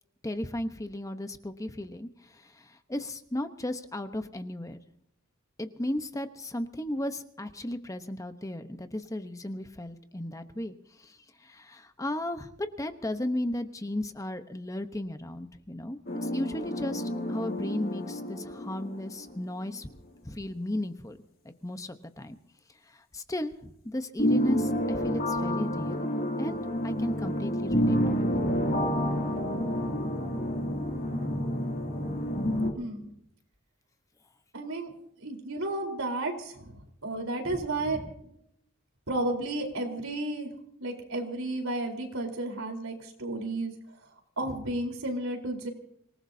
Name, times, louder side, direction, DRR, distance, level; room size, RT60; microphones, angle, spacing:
voice 1, 0.2-4.8 5.6-12.5 12.8-19.9 20.2-21.2 21.4-22.4 22.9-26.1 26.4-26.6 26.8-28.3 30.7-31.2 37.5-37.6 37.9-38.1, left 1 dB, 15° left, 8 dB, 1.0 m, -35 dB
sound 1, 16.1-19.4 19.7-19.8 24.2-32.7, equal, 45° left, 2.7 m, -29 dB
voice 2, 32.8-33.1 34.5-34.9 35.2-38.3 39.1-40.5 40.8-43.7 44.4-45.7, right 2 dB, 80° right, 3 dB, 4.1 m, -32 dB
26.0 x 18.5 x 2.8 m, 0.73 s
head